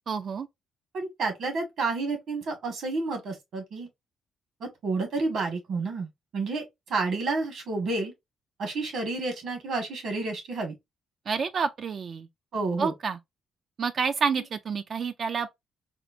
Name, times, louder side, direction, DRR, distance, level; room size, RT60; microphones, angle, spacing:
voice 1, 0.1-0.5 11.3-12.3 12.8-13.2 13.8-15.5, right 5 dB, 50° right, 0.3 m, -29 dB
voice 2, 0.9-3.9 4.6-8.1 8.6-10.7 12.5-12.9, right 3 dB, 70° right, 1.5 m, -30 dB
4.3 x 2.1 x 2.6 m
cardioid pair, 90°, 0 cm